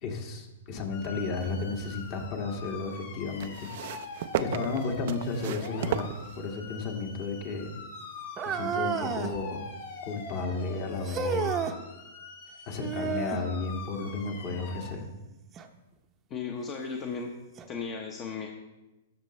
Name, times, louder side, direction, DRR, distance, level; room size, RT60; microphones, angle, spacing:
voice 1, 0.0-3.7 4.4-6.1 6.4-7.7 8.4-9.6 10.0-11.5 12.7-15.1, left 4 dB, 45° left, 1 dB, 1.9 m, -33 dB
sound 1, 0.9-14.9, left 4 dB, 70° left, 2.1 m, -44 dB
sound 2, 1.4-2.3 3.4-6.8 7.7-7.8, right 11 dB, 55° right, 0.4 m, -35 dB
sound 3, 8.4-9.4 11.0-11.8 12.8-13.5 15.5-15.7 16.5-16.6 17.6-17.7, right 6 dB, 25° right, 0.7 m, -31 dB
voice 2, 16.3-17.3 17.7-18.5, left 5 dB, 30° left, 1 dB, 0.9 m, -35 dB
13.0 x 6.8 x 3.2 m, 1.0 s
hypercardioid pair, 130°, 0 cm